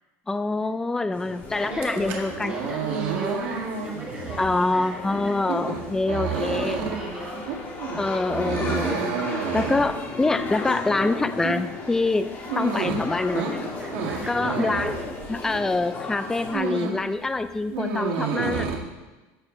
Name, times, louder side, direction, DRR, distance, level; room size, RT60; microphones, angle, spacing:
voice 1, 0.3-2.8 3.3-3.4 4.4-6.8 8.0-9.3 9.5-12.3 12.6-13.6 14.3-15.0 15.3-18.7, left 2 dB, 5° left, 11 dB, 0.4 m, -25 dB
sound 1, 1.1-16.5, left 3 dB, 30° left, 2.0 m, -35 dB
voice 2, 1.6-5.4 6.3-7.6 13.8-14.9, right 2 dB, 15° right, -4 dB, 2.0 m, -36 dB
sound 2, 1.7-15.8 16.1-17.1 17.4-18.8, right 5 dB, 80° right, 1.9 m, -30 dB
14.5 x 5.0 x 5.3 m, 1.1 s
cardioid pair, 145°, 7 cm